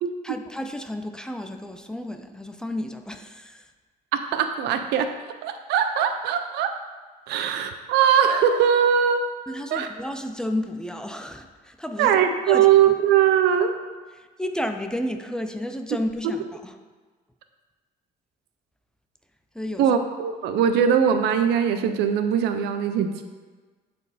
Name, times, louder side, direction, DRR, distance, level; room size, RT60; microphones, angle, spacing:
voice 1, 0.2-3.7 7.3-7.4 9.5-12.2 12.5-12.7 14.2-16.7 19.5-19.9, left 1 dB, 5° left, 6 dB, 0.6 m, -32 dB
voice 2, 4.1-5.1 5.4-6.7 7.3-9.3 9.7-9.9 12.0-13.7 19.8-23.2, right 8 dB, 85° right, 8 dB, 0.7 m, -21 dB
12.0 x 4.4 x 4.2 m, 1.4 s
cardioid pair, 110°, 17 cm